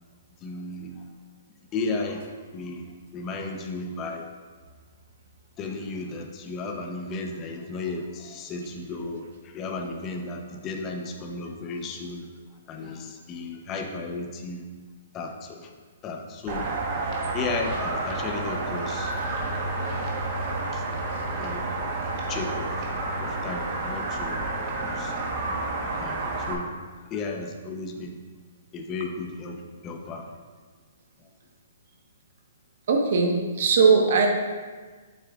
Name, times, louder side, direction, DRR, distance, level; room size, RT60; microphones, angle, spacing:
voice 1, 0.4-1.0 1.7-2.3 2.5-2.9 3.1-4.3 5.6-12.3 12.7-14.6 15.1-15.7 16.0-16.7 17.3-19.2 20.7-20.8 21.4-21.7 22.3-22.7 23.2-24.4 24.7-25.1 26.0-26.7 27.1-28.2 28.7-30.3, left 3 dB, 25° left, 3 dB, 0.8 m, -34 dB
sound 1, 16.5-26.5, right 2 dB, 35° right, 1.3 m, -30 dB
voice 2, 32.9-34.3, right 5 dB, 60° right, 2 dB, 1.3 m, -19 dB
8.6 x 7.8 x 2.5 m, 1.4 s
hypercardioid pair, 155°, 0 cm